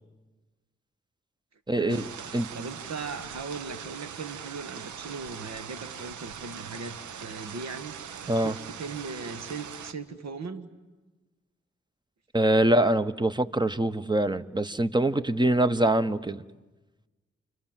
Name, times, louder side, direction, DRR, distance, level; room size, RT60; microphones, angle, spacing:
voice 1, 1.7-2.1 2.5-8.0 8.4-10.7, right 4 dB, 65° right, 11 dB, 1.7 m, -38 dB
sound 1, 1.9-9.9, right 8 dB, 85° right, 1.0 m, -41 dB
voice 2, 12.3-16.4, right 1 dB, 15° right, 13 dB, 1.1 m, -24 dB
29.5 x 25.0 x 7.5 m, 1.2 s
cardioid pair, 45°, 29 cm